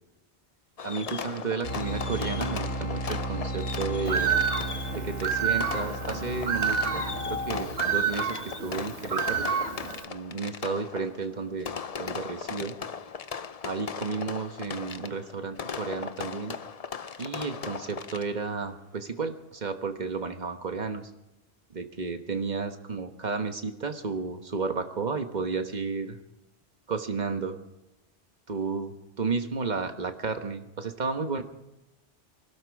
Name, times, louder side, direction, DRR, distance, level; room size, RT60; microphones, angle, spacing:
Fireworks, 0.8-18.5, left 6 dB, 40° left, 0.6 m, -38 dB
voice 1, 0.8-4.3 4.9-9.5 10.0-12.7 13.6-16.6 17.2-21.1 21.7-26.2 26.9-27.6 28.5-31.4, right 4 dB, 40° right, 7 dB, 1.3 m, -32 dB
sound 1, 1.6-7.6, right 1 dB, 80° left, 4.0 m, -34 dB
Bird, 4.1-10.0, right 7 dB, 90° right, 1.5 m, -29 dB
24.0 x 12.5 x 4.7 m, 0.97 s
omnidirectional pair, 1.2 m